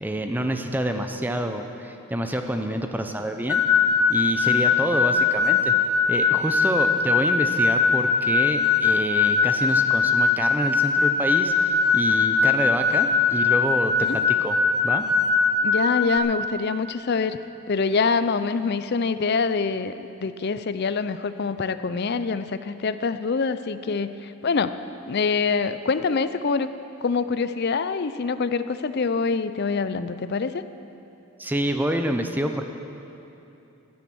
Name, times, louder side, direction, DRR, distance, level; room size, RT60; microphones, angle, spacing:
voice 1, 0.0-3.6 4.1-5.7 6.1-14.6 14.8-15.1 31.4-32.7, right 1 dB, 10° right, 6 dB, 0.6 m, -27 dB
sound 1, 3.5-16.2, left 5 dB, 80° left, 1.2 m, -21 dB
voice 2, 15.6-17.4 17.7-19.9 20.2-24.7 25.1-26.7 27.0-30.6, left 4 dB, 45° left, 12 dB, 0.4 m, -25 dB
12.5 x 10.5 x 7.8 m, 2.9 s
head